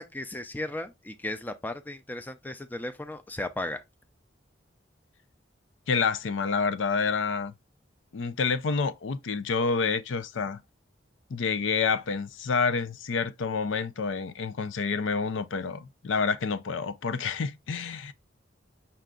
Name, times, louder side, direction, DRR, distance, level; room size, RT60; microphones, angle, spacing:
voice 1, 0.0-3.8, left 1 dB, 10° left, 0.4 m, -35 dB
voice 2, 5.9-7.5 8.1-10.6 11.3-18.1, left 5 dB, 90° left, 0.5 m, -28 dB
5.6 x 2.5 x 3.7 m
head